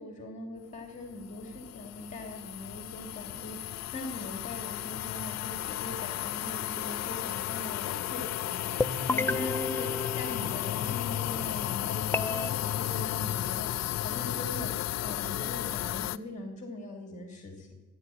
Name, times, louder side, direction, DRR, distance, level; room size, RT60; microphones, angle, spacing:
voice 1, 0.0-9.9 10.1-14.7 15.0-17.7, left 1 dB, 25° left, 3 dB, 2.8 m, -41 dB
sound 1, 1.0-16.2, left 13 dB, 60° left, 0.5 m, -34 dB
sound 2, 8.8-10.9 12.1-12.5, left 2 dB, 10° left, 0.3 m, -32 dB
14.0 x 8.8 x 7.8 m, 1.2 s
cardioid pair, 90°, 30 cm